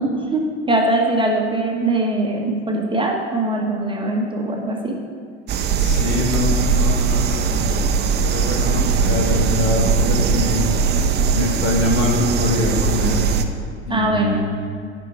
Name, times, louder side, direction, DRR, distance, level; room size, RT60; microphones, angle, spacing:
voice 1, 0.0-5.0 13.9-14.4, right 2 dB, 15° right, 0 dB, 1.2 m, -21 dB
sound 1, 5.5-13.4, right 5 dB, 30° right, 0.6 m, -19 dB
voice 2, 5.7-7.9 8.2-10.6 11.3-13.3 13.9-14.5, left 2 dB, 65° left, 0 dB, 1.7 m, -24 dB
10.5 x 5.4 x 4.6 m, 2.2 s
figure-of-eight pair, 75°, 36 cm